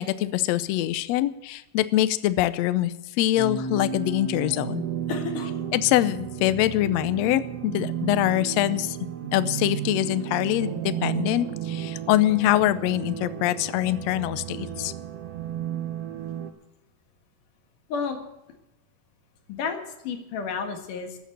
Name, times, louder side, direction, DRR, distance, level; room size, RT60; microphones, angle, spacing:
voice 1, 0.0-4.8 5.7-9.0 9.3-14.9, left 14 dB, 90° left, 14 dB, 1.5 m, -24 dB
sound 1, 3.4-16.5, right 8 dB, 60° right, 1.8 m, -33 dB
voice 2, 5.1-5.5 14.6-14.8 17.9-18.2 19.5-19.8 20.0-21.2, left 5 dB, 70° left, 5 dB, 3.2 m, -31 dB
13.5 x 8.5 x 8.4 m, 0.94 s
omnidirectional pair, 3.9 m